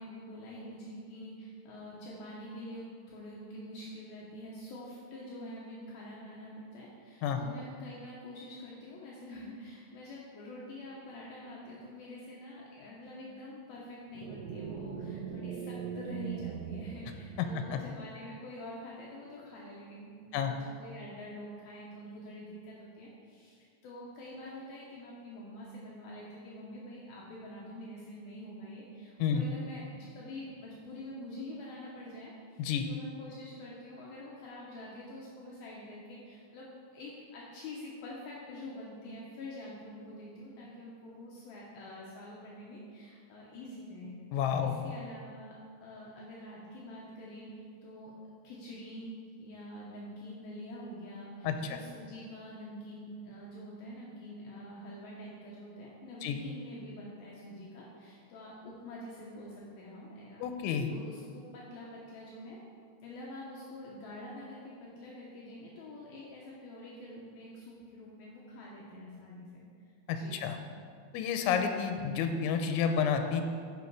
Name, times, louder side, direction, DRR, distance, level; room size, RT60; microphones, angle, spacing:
voice 1, 0.0-36.7 36.9-44.2 44.6-48.1 48.4-49.1 49.4-62.6 63.0-69.9 70.1-70.4, left 1 dB, 70° left, -5 dB, 2.4 m, -46 dB
sound 1, 14.1-17.8, right 7 dB, 80° right, 2.6 m, -40 dB
voice 2, 44.3-44.8 51.4-51.8 56.2-56.4 60.4-60.9 70.1-70.6 71.1-73.4, left 7 dB, 85° left, 6 dB, 3.0 m, -30 dB
9.8 x 6.3 x 4.7 m, 2.2 s
omnidirectional pair, 5.3 m